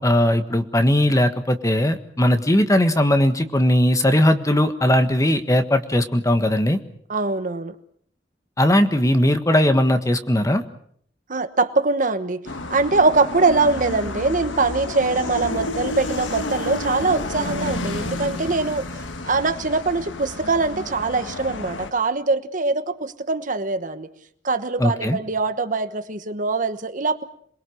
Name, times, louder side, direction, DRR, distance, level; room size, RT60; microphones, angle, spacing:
voice 1, 0.0-6.8 8.6-10.6 24.8-25.2, left 1 dB, 20° left, 8 dB, 1.5 m, -19 dB
voice 2, 7.1-7.7 11.3-12.4 12.7-18.9 19.2-24.1 24.4-27.2, right 3 dB, 45° right, 11 dB, 1.2 m, -22 dB
sound 1, 12.5-21.9, left 2 dB, 90° left, 1.5 m, -30 dB
27.5 x 21.0 x 6.5 m, 0.65 s
head